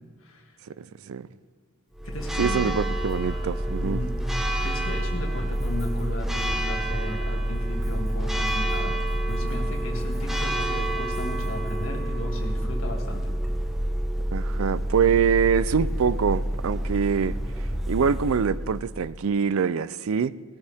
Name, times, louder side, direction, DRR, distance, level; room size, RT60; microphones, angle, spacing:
voice 1, 0.2-0.6 2.0-2.8 3.8-4.2 4.6-8.9 9.3-13.3, left 1 dB, 75° left, 2.1 m, -35 dB
voice 2, 0.8-1.3 2.4-4.0 14.3-17.4 17.9-20.4, right 6 dB, 80° right, 0.4 m, -24 dB
Church bell, 1.9-19.2, right 1 dB, ahead, 1.2 m, -28 dB
18.5 x 14.5 x 3.5 m
head